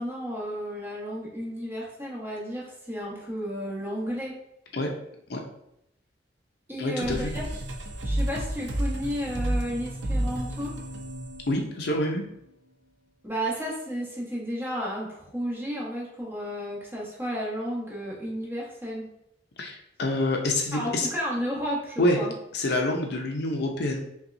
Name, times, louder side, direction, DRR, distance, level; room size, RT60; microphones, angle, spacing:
voice 1, 0.0-4.3 6.7-7.5 8.0-10.7 13.2-19.1 20.7-22.3, equal, 10° right, -6 dB, 1.3 m, -32 dB
voice 2, 6.8-7.3 11.5-12.2 19.6-21.1 22.0-22.2 22.5-24.0, left 1 dB, 60° left, 2 dB, 0.6 m, -26 dB
sound 1, 7.0-12.3, right 1 dB, 85° right, 0.6 m, -31 dB
5.5 x 2.3 x 2.6 m, 0.80 s
head